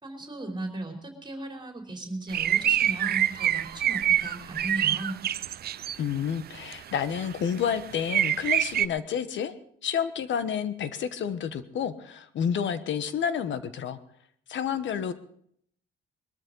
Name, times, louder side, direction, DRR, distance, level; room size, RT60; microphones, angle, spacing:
voice 1, 0.0-5.2, right 2 dB, 25° right, 2 dB, 3.5 m, -37 dB
sound 1, 2.3-6.0 6.6-6.7 7.2-7.3 7.7-7.8 8.1-8.9, right 11 dB, 55° right, 0.5 m, -25 dB
voice 2, 6.0-9.5 9.8-14.0 14.5-15.1, left 8 dB, 70° left, 12 dB, 1.2 m, -29 dB
21.5 x 13.5 x 3.9 m, 0.66 s
cardioid pair, 90°, 20 cm